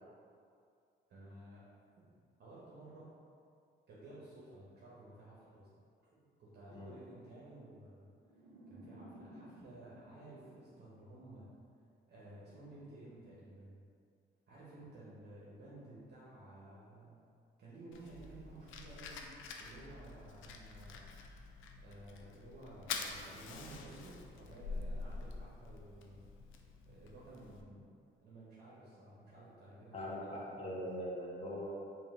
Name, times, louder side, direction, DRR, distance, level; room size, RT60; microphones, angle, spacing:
voice 1, 1.1-1.6 2.0-2.1 2.4-3.1 3.9-5.7 6.4-8.1 8.7-11.5 12.1-13.8 14.5-17.2 17.6-19.3 19.6-21.1 21.7-26.2 26.9-27.8 28.2-30.9, right 2 dB, 55° right, -7 dB, 0.9 m, -54 dB
sound 1, 8.2-11.4, right 1 dB, 80° right, 0.7 m, -57 dB
Fire, 17.9-27.6, left 4 dB, 80° left, 0.4 m, -47 dB
voice 2, 29.9-31.7, equal, 30° left, -5 dB, 0.8 m, -41 dB
3.7 x 2.7 x 3.7 m, 2.3 s
cardioid pair, 90°, 20 cm